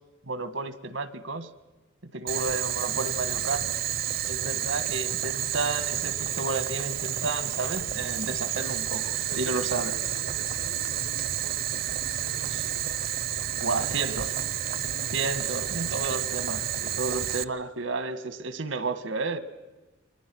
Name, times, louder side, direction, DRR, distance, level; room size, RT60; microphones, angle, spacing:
voice 1, 0.3-1.5 2.1-3.7 4.3-9.9 13.6-14.3 15.1-19.4, right 3 dB, 85° right, 12 dB, 1.6 m, -31 dB
Boiling, 2.3-17.4, right 11 dB, 50° right, 0.7 m, -30 dB
voice 2, 9.1-13.0 13.5-15.1, left 1 dB, 90° left, 4 dB, 4.2 m, -47 dB
30.0 x 23.0 x 6.3 m, 1.2 s
head